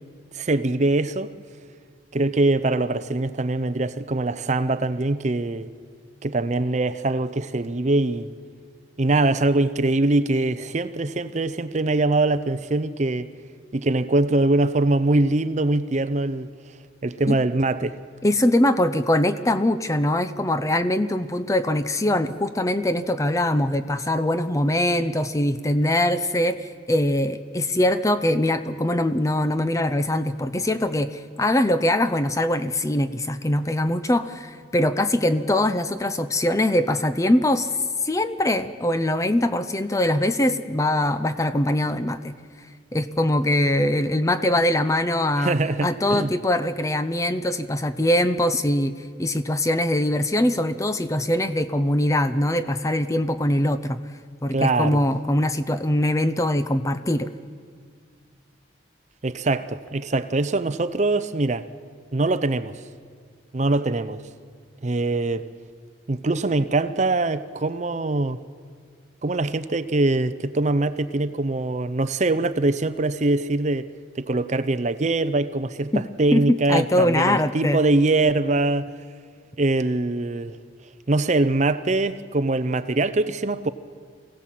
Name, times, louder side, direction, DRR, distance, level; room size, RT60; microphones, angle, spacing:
voice 1, 0.3-1.3 2.1-5.7 6.2-8.3 9.0-13.3 13.7-16.5 17.0-18.0 45.4-46.3 54.5-55.0 59.2-61.7 62.1-62.8 63.5-64.2 64.8-65.5 66.1-68.4 69.2-73.9 74.2-78.9 79.6-80.6 81.1-83.7, right 2 dB, 40° right, 0.6 m, -23 dB
voice 2, 18.2-42.3 42.9-48.9 49.2-54.0 54.4-57.3 75.9-76.0 76.3-77.8, left 1 dB, 15° left, 0.5 m, -22 dB
24.5 x 16.5 x 7.5 m
head